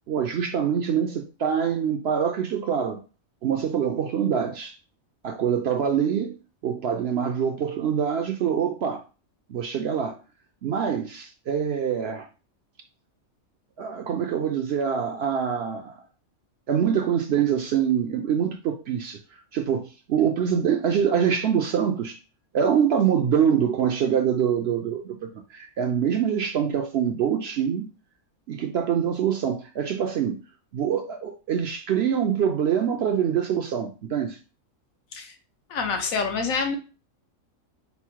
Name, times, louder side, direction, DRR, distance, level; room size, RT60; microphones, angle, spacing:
voice 1, 0.1-3.0 3.4-4.8 5.2-6.4 6.6-9.0 9.5-10.2 10.6-12.3 13.8-16.0 16.7-19.2 19.5-22.2 22.5-27.9 28.5-30.4 30.7-34.4, right 8 dB, 65° right, 0.7 m, -25 dB
voice 2, 35.7-36.8, left 5 dB, 80° left, 1.3 m, -26 dB
5.5 x 2.0 x 4.5 m
omnidirectional pair, 1.4 m